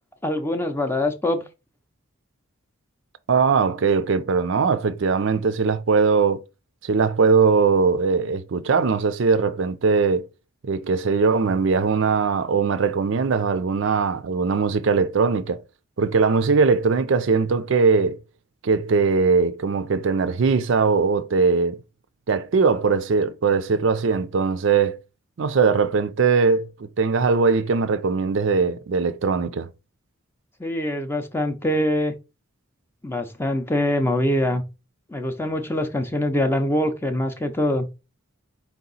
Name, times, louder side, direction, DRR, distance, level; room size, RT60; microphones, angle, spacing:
voice 1, 0.2-1.4 30.6-32.1 33.0-34.6 35.1-37.9, left 1 dB, 10° left, 0.5 m, -24 dB
voice 2, 3.3-6.4 6.8-10.3 10.6-15.6 16.0-18.2 18.6-21.8 22.3-25.0 25.4-29.7, right 5 dB, 60° right, 0.4 m, -20 dB
4.6 x 2.8 x 3.9 m
head